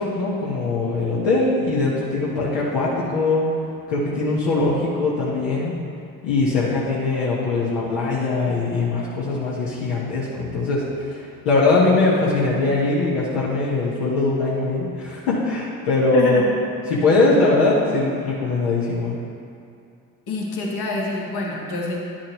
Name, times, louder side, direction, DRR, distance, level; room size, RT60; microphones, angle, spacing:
voice 1, 0.0-3.4 3.9-5.7 6.2-16.5 16.9-19.2, left 3 dB, 75° left, -7 dB, 1.5 m, -21 dB
voice 2, 16.1-16.5 20.3-22.0, left 2 dB, 60° left, -2 dB, 1.7 m, -26 dB
10.0 x 7.1 x 3.1 m, 2.5 s
hypercardioid pair, 50°, 43 cm